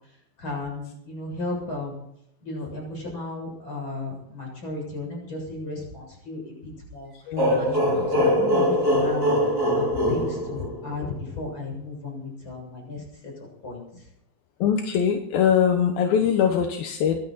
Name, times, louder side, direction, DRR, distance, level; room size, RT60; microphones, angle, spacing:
voice 1, 0.0-2.0 2.4-13.3 13.6-14.1, left 2 dB, 30° left, -1 dB, 7.9 m, -35 dB
voice 2, 7.3-7.8 14.6-17.2, left 8 dB, 80° left, 5 dB, 3.0 m, -22 dB
sound 1, 7.4-11.1, equal, 25° right, 5.2 m, -22 dB
22.0 x 12.5 x 4.2 m, 0.72 s
omnidirectional pair, 4.2 m